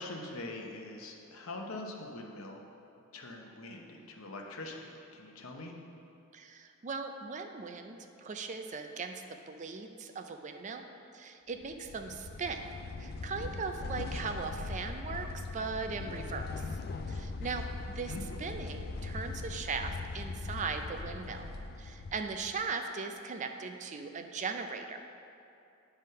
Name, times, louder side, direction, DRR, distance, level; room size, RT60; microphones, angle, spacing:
voice 1, 0.0-2.6 3.1-5.8 18.0-18.2, left 2 dB, 70° left, 1 dB, 0.8 m, -43 dB
voice 2, 6.3-10.8 11.1-12.6 13.0-16.6 17.1-18.1 18.4-21.5 21.8-25.0, right 4 dB, 35° right, 6 dB, 0.4 m, -39 dB
sound 1, 11.6-22.6, left 3 dB, 50° left, 0.4 m, -40 dB
9.2 x 3.5 x 5.5 m, 2.6 s
head